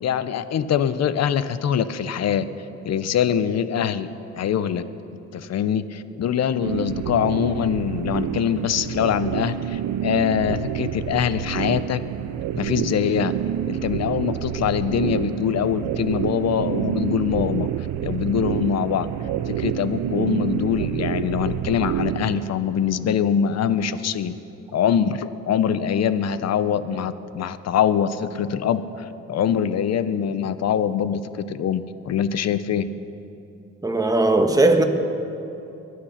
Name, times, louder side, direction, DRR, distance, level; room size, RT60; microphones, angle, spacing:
voice 1, 0.0-2.4 2.8-4.1 4.4-4.8 5.3-12.0 12.6-13.3 13.7-17.7 18.0-19.1 19.5-24.3 24.7-32.9, left 8 dB, 60° left, 0.8 m, -23 dB
sound 1, 6.6-22.5, right 11 dB, 75° right, 0.5 m, -28 dB
voice 2, 33.8-34.8, right 2 dB, 10° right, 1.5 m, -18 dB
22.5 x 9.6 x 5.8 m
cardioid pair, 90°, 30 cm